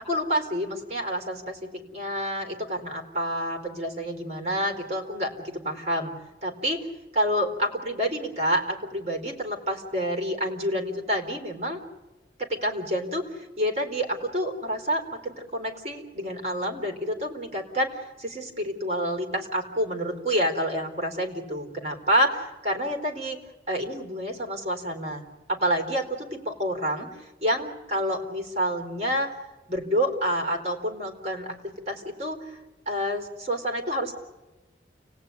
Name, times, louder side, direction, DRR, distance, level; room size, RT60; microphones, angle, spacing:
voice 1, 0.0-6.1 6.4-6.9 7.1-11.8 12.4-23.4 23.7-29.4 29.7-32.6 32.9-34.1, equal, 35° right, 4 dB, 3.8 m, -28 dB
29.5 x 18.5 x 9.6 m, 1.1 s
head